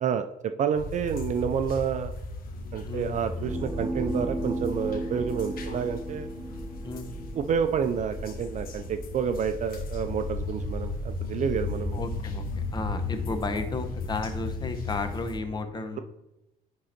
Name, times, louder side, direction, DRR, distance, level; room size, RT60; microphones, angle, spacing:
voice 1, 0.6-2.1 2.7-6.3 7.4-12.0, right 7 dB, 45° right, 8 dB, 0.5 m, -29 dB
sound 1, 0.7-15.4, left 3 dB, 60° left, 1.4 m, -35 dB
sound 2, 3.0-8.9, right 1 dB, 10° right, 0.7 m, -35 dB
voice 2, 11.9-12.4 12.7-16.0, left 3 dB, 25° left, 8 dB, 1.0 m, -33 dB
10.0 x 3.8 x 4.4 m, 0.90 s
cardioid pair, 110°, 17 cm